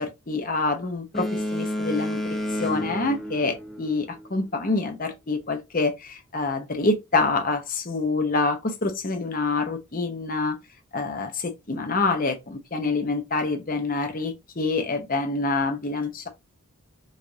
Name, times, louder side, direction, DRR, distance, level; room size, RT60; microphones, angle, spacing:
voice 1, 0.0-10.6 10.9-16.3, left 3 dB, 40° left, 0.8 m, -26 dB
Boat Water vehicle, 1.1-4.3, left 1 dB, ahead, 0.4 m, -30 dB
4.8 x 2.5 x 2.7 m
head